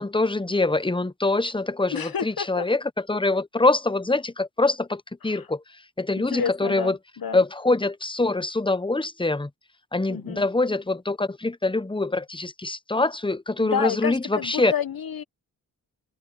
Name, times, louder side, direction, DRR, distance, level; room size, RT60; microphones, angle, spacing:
voice 1, 0.0-2.8 3.1-5.6 6.0-7.0 7.3-9.5 9.9-14.7, left 2 dB, 15° left, 1.0 m, -24 dB
voice 2, 1.9-2.7 5.2-5.5 6.1-7.4 10.1-10.5 13.6-15.2, left 7 dB, 65° left, 1.3 m, -30 dB
cardioid pair, 40°, 38 cm